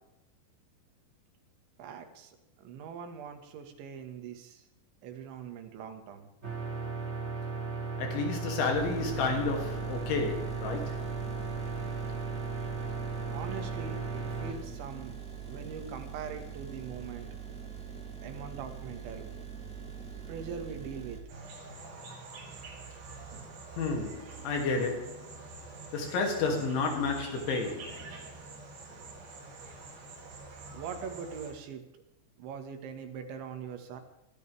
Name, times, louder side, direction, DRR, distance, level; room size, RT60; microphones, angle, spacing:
voice 1, 1.8-4.6 5.0-6.3 13.3-15.2 15.5-17.3 18.2-19.3 20.3-21.2 30.7-31.8 32.4-34.0, right 6 dB, 90° right, 4.1 m, -42 dB
sound 1, 6.4-14.5, right 4 dB, 20° right, 1.9 m, -36 dB
voice 2, 8.0-11.0 23.8-25.3 25.9-28.0, left 4 dB, 90° left, 5.1 m, -31 dB
sound 2, 8.7-21.2, right 7 dB, ahead, 2.0 m, -43 dB
sound 3, 21.3-31.5, right 3 dB, 65° right, 5.7 m, -46 dB
22.5 x 13.5 x 3.5 m
omnidirectional pair, 5.1 m